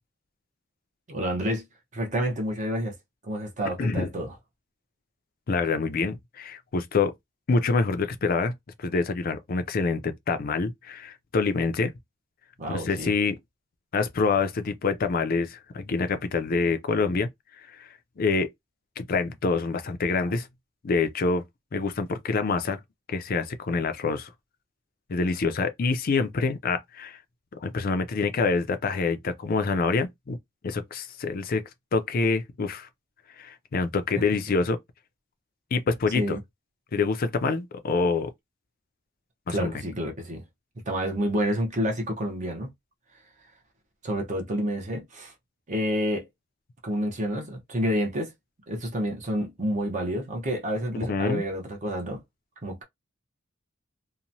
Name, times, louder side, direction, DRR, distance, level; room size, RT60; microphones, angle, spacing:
voice 1, 1.1-1.6 1.9-2.9 3.2-4.4 12.6-13.1 36.1-36.4 39.5-40.4 40.9-42.7 44.0-45.3 45.7-46.3 46.8-48.3 48.7-52.2 52.6-52.8, equal, 35° right, 0.7 m, -29 dB
voice 2, 3.8-4.1 5.5-7.1 7.5-8.5 8.8-11.9 12.7-13.4 13.9-17.3 17.7-17.9 18.2-18.5 19.0-20.5 20.8-21.4 21.7-22.8 23.1-24.3 25.1-27.2 27.6-30.4 30.6-31.6 31.9-32.9 33.4-34.8 35.7-36.4 36.9-38.3 39.5-39.7 51.1-51.4, left 4 dB, 45° left, 0.4 m, -26 dB
2.9 x 2.1 x 2.6 m
head